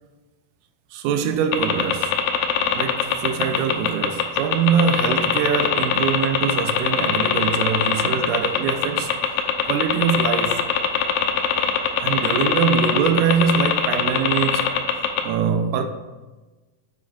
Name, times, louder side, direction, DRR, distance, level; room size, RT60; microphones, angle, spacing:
voice 1, 0.9-2.2 2.8-9.1 9.7-10.6 12.0-14.7 15.2-15.9, right 7 dB, 80° right, 1.9 m, -23 dB
sound 1, 1.5-15.3, left 9 dB, 80° left, 2.0 m, -21 dB
8.5 x 7.6 x 2.3 m
omnidirectional pair, 3.8 m